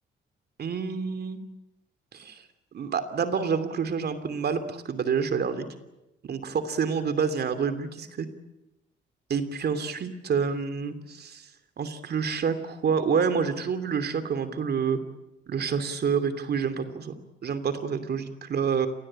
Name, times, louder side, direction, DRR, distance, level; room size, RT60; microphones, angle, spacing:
voice 1, 0.6-1.4 2.1-2.4 2.7-5.7 6.2-8.3 9.3-11.5 11.8-15.0 15.5-18.9, right 6 dB, 55° right, 9 dB, 2.9 m, -28 dB
27.5 x 20.5 x 8.8 m, 0.94 s
cardioid pair, 90°, 20 cm